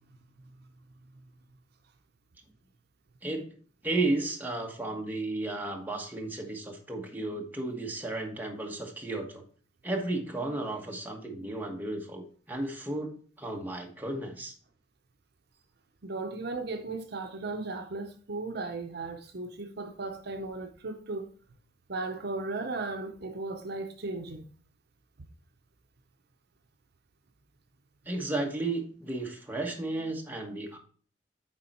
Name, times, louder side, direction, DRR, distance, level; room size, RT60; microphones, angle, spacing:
voice 1, 3.2-3.5 3.8-9.4 9.8-14.5 28.0-30.8, right 2 dB, 10° right, 1.3 m, -33 dB
voice 2, 16.0-21.3 21.9-24.4, right 3 dB, 60° right, 0.8 m, -36 dB
9.5 x 3.8 x 4.4 m
head